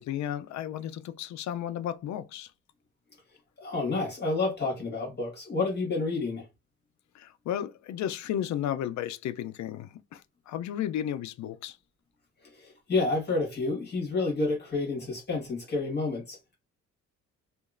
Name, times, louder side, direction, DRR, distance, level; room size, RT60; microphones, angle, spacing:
voice 1, 0.0-2.5 7.1-11.8, left 10 dB, 65° left, 0.5 m, -33 dB
voice 2, 3.6-6.4 12.6-16.4, left 3 dB, 35° left, 1.5 m, -29 dB
2.8 x 2.5 x 2.5 m
cardioid pair, 90°, 30 cm